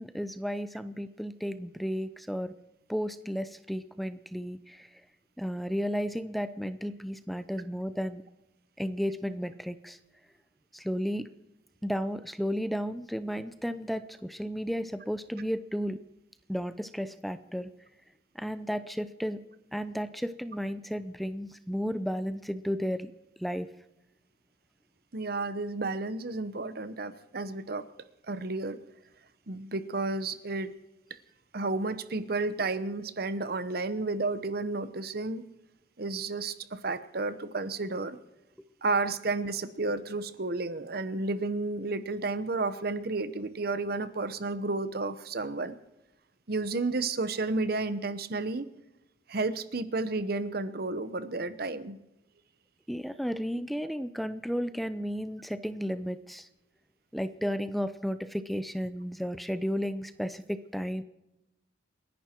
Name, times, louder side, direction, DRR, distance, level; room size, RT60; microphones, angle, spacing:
voice 1, 0.0-2.5 2.9-4.9 5.4-8.2 8.8-10.0 10.7-11.3 11.8-16.0 16.5-17.7 18.3-19.4 19.7-23.1 23.4-23.7 52.9-56.5 57.1-61.0, equal, ahead, 12 dB, 0.6 m, -33 dB
voice 2, 25.1-27.8 28.3-28.8 29.5-30.8 31.5-35.4 36.0-38.2 38.8-45.8 46.5-48.7 49.3-52.0, right 3 dB, 55° right, 13 dB, 1.0 m, -32 dB
29.0 x 11.0 x 4.5 m, 0.90 s
head